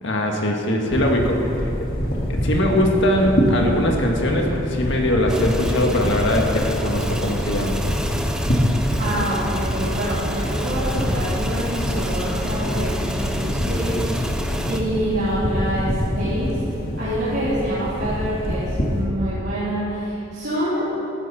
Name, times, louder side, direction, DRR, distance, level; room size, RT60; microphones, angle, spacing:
voice 1, 0.0-1.7 2.3-7.8, left 1 dB, 60° left, 1 dB, 1.8 m, -21 dB
sound 1, 0.9-19.0, equal, 45° left, 2.4 m, -25 dB
sound 2, 5.3-14.8, right 1 dB, 5° right, 0.7 m, -31 dB
voice 2, 9.0-14.3 14.7-16.6 17.0-20.9, equal, 55° right, -12 dB, 3.7 m, -26 dB
16.0 x 12.5 x 4.3 m, 2.8 s
head